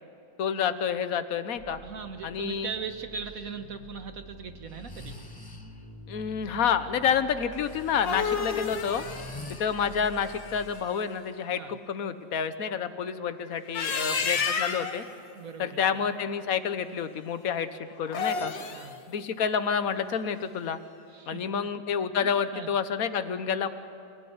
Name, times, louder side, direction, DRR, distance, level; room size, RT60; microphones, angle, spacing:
voice 1, 0.4-1.8 2.2-2.7 6.1-9.0 9.5-15.0 15.6-18.5 19.1-20.8 21.3-23.7, left 7 dB, 55° left, 11 dB, 1.4 m, -29 dB
sound 1, 1.6-10.7, right 1 dB, 70° right, 3.2 m, -47 dB
voice 2, 1.8-5.2 11.6-11.7 13.9-14.5 15.3-16.0 18.7-19.0 21.1-21.7 22.2-22.7, right 6 dB, 50° right, 8 dB, 1.6 m, -40 dB
Breathing, 3.3-3.5 4.6-5.9 7.6-10.3, left 2 dB, 20° left, 0.7 m, -47 dB
sound 2, 7.7-10.8 13.5-15.0 18.0-18.9, left 5 dB, 80° left, 2.2 m, -31 dB
28.0 x 17.0 x 9.7 m, 2.6 s
omnidirectional pair, 2.0 m